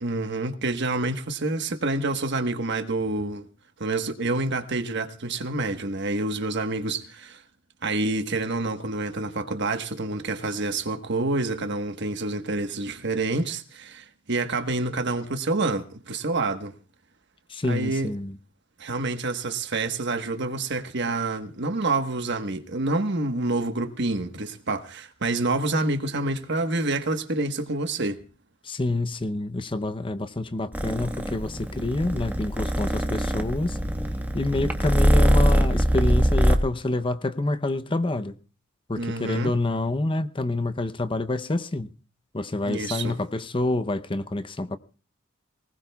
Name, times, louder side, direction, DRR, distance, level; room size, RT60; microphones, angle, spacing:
voice 1, 0.0-3.5 3.8-7.4 7.8-16.7 17.7-18.1 18.8-28.2 39.0-39.5 42.7-43.1, right 2 dB, 60° right, 1.3 m, -27 dB
voice 2, 17.5-18.4 28.6-33.8 34.3-38.4 38.9-41.9 42.3-44.8, left 2 dB, 25° left, 0.7 m, -27 dB
Purr, 30.7-36.6, equal, 10° right, 1.4 m, -22 dB
24.5 x 19.0 x 2.3 m
head